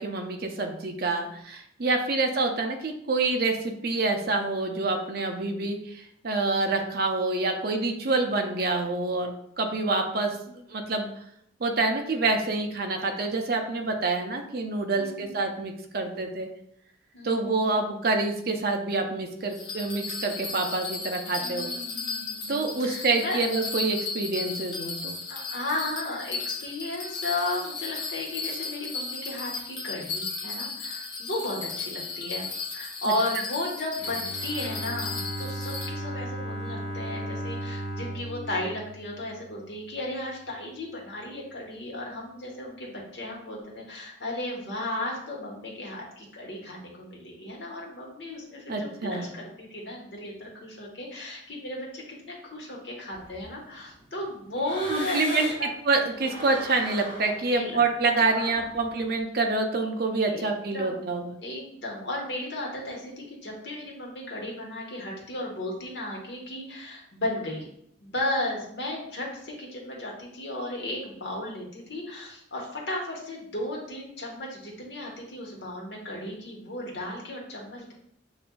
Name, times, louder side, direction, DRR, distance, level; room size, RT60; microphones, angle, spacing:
voice 1, 0.0-10.4 10.7-11.1 11.6-16.5 17.2-21.7 22.5-25.1 48.7-49.3 54.9-55.5 55.8-61.3, right 3 dB, 55° right, 4 dB, 0.6 m, -27 dB
voice 2, 14.9-15.4 17.1-17.7 21.4-23.4 25.3-55.7 57.5-57.8 58.1-58.7 60.2-60.5 60.7-67.7 68.0-77.9, left 1 dB, 65° left, -2 dB, 1.2 m, -35 dB
Bell, 19.5-35.9, left 4 dB, 80° left, 0.9 m, -35 dB
Bowed string instrument, 34.0-39.9, right 1 dB, 80° right, 1.0 m, -36 dB
sound 1, 53.1-55.8 56.1-59.1, left 1 dB, 25° left, 0.8 m, -41 dB
6.9 x 2.5 x 2.3 m, 0.71 s
head